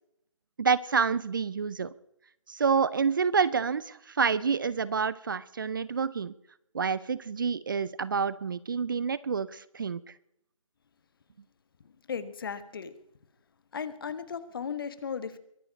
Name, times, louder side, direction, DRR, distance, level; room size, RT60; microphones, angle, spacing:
voice 1, 0.6-1.9 2.5-6.3 6.7-10.0, right 5 dB, 40° right, 19 dB, 0.5 m, -28 dB
voice 2, 12.1-12.9 13.7-15.4, left 6 dB, 45° left, 14 dB, 1.4 m, -36 dB
22.5 x 9.2 x 5.3 m, 0.76 s
figure-of-eight pair, 160°, 17 cm